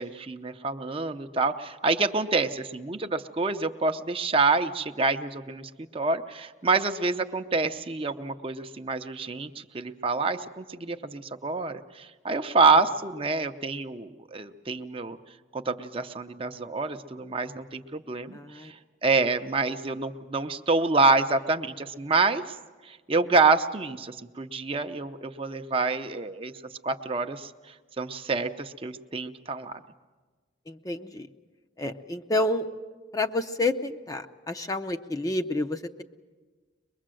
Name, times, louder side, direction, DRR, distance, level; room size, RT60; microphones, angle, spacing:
voice 1, 0.0-15.2 15.5-22.6 22.8-26.5 26.8-27.5 28.0-29.8, right 3 dB, 30° right, 7 dB, 0.7 m, -27 dB
voice 2, 18.3-18.7 30.7-31.3 31.8-32.7 33.1-36.0, left 2 dB, 20° left, 5 dB, 0.6 m, -29 dB
23.5 x 21.5 x 7.6 m, 1.4 s
head